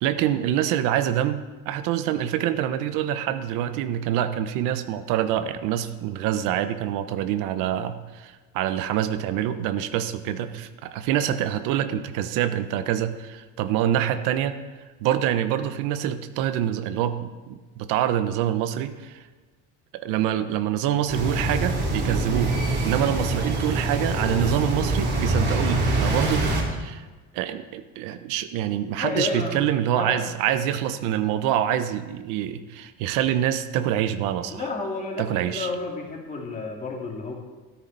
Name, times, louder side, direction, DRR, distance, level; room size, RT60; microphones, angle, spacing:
voice 1, 0.0-14.6 15.0-19.2 19.9-22.5 22.8-26.5 26.8-27.1 27.3-34.6 35.2-35.7, right 11 dB, 85° right, 10 dB, 1.0 m, -26 dB
sound 1, 21.1-26.6, right 2 dB, 35° right, 2.9 m, -24 dB
voice 2, 29.0-29.6 30.0-30.2 34.5-37.3, left 3 dB, 25° left, 0 dB, 2.4 m, -30 dB
13.5 x 13.0 x 4.1 m, 1.3 s
cardioid pair, 155°, 31 cm